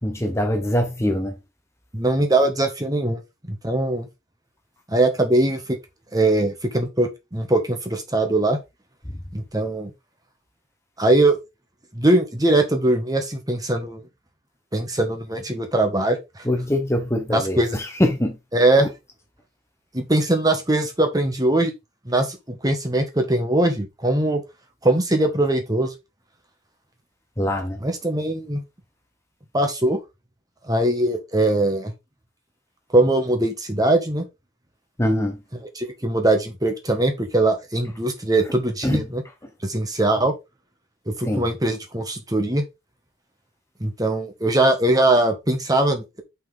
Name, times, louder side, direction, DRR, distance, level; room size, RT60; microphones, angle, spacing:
voice 1, 0.0-1.3 16.4-18.4 18.8-18.9 27.4-27.8 35.0-35.4 38.8-39.0 41.2-41.4, left 1 dB, 15° left, 1.0 m, -23 dB
voice 2, 1.9-3.2 3.5-4.1 4.9-5.6 6.1-8.6 9.3-9.9 11.0-11.4 11.9-14.0 14.7-16.4 17.3-17.8 18.5-18.9 19.9-21.7 22.0-24.4 24.8-25.9 27.8-28.6 29.5-30.0 30.7-31.9 32.9-34.2 35.5-39.2 39.6-40.3 41.1-42.6 43.8-46.2, right 2 dB, 20° right, 1.4 m, -21 dB
5.6 x 5.5 x 3.9 m
head